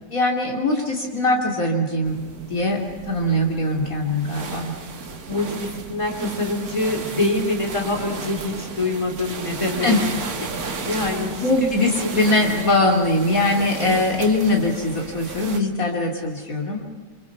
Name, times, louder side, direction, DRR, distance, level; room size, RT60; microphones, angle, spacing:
voice 1, 0.1-2.2 2.5-2.8 3.0-4.7 9.8-10.0 11.4-17.0, left 2 dB, 60° left, 1 dB, 3.0 m, -21 dB
sound 1, 2.0-15.6, right 4 dB, 70° right, 2.2 m, -34 dB
voice 2, 5.3-10.0 10.5-11.9, left 2 dB, 20° left, 3 dB, 4.3 m, -25 dB
29.5 x 25.5 x 5.8 m, 1.4 s
omnidirectional pair, 1.7 m